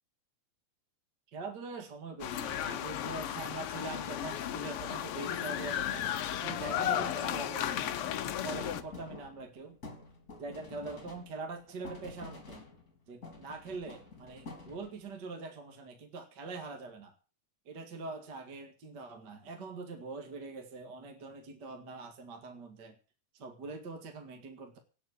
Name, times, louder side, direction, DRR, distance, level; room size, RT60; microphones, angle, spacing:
voice 1, 1.3-8.0 8.4-9.8 10.4-12.6 13.1-17.1 17.7-22.9 23.3-24.8, right 3 dB, 35° right, 5 dB, 2.0 m, -43 dB
sound 1, 2.2-8.8, left 10 dB, 80° left, 1.3 m, -34 dB
sound 2, 6.5-13.0 13.2-15.1, left 3 dB, 25° left, 3.4 m, -49 dB
18.0 x 6.8 x 8.4 m, 0.37 s
omnidirectional pair, 3.8 m